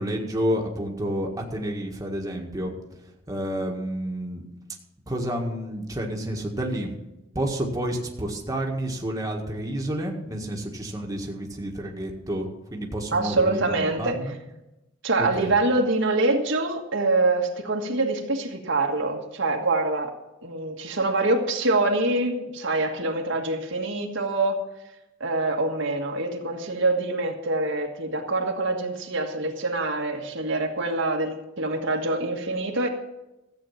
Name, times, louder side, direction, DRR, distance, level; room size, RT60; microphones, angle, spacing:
voice 1, 0.0-2.7 3.3-4.4 5.1-6.9 7.4-14.3 15.2-15.5, right 1 dB, 20° right, 0 dB, 1.8 m, -30 dB
voice 2, 13.1-14.2 15.0-20.1 20.4-24.6 25.2-32.9, right 2 dB, 70° right, 2 dB, 1.7 m, -25 dB
14.5 x 8.6 x 5.7 m, 0.96 s
head